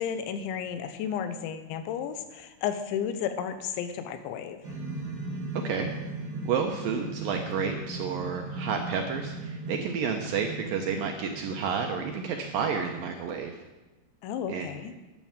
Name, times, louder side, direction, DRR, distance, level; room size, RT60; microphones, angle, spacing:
voice 1, 0.0-4.6 14.2-14.9, left 8 dB, 85° left, 9 dB, 3.3 m, -33 dB
sound 1, 4.6-13.1, right 2 dB, 55° right, 1.1 m, -38 dB
voice 2, 6.5-13.5 14.5-14.7, right 6 dB, 80° right, 3 dB, 2.0 m, -30 dB
12.5 x 7.4 x 8.8 m, 1.1 s
omnidirectional pair, 5.3 m